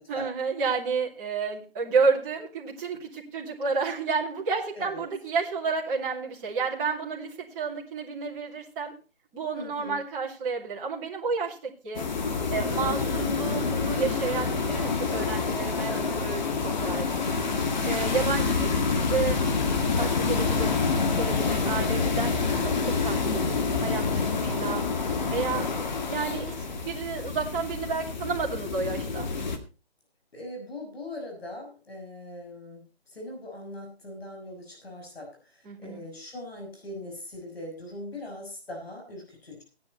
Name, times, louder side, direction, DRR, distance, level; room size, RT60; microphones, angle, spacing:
voice 1, 0.1-8.9 9.3-12.1 12.5-17.2 17.8-24.8 25.3-25.7 26.1-26.5 26.8-29.3 35.6-36.0, right 4 dB, 15° right, -5 dB, 2.6 m, -31 dB
voice 2, 9.5-10.0 12.8-13.0 15.9-16.2 18.2-18.3 21.5-22.0 25.5-25.8 30.3-39.6, left 1 dB, 70° left, 2 dB, 6.2 m, -41 dB
sound 1, 11.9-29.6, left 4 dB, 45° left, 2.0 m, -27 dB
15.5 x 10.5 x 4.1 m, 0.33 s
figure-of-eight pair, 155°, 32 cm